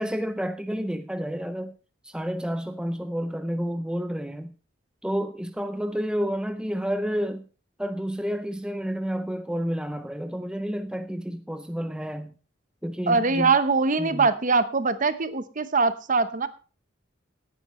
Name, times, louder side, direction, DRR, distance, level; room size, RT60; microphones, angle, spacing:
voice 1, 0.0-1.8 2.0-4.5 5.0-7.5 7.8-12.4 12.8-13.5 14.0-14.3, equal, 5° right, 0.5 m, -30 dB
voice 2, 13.1-16.5, right 4 dB, 40° right, 0.8 m, -22 dB
17.5 x 9.3 x 3.1 m
head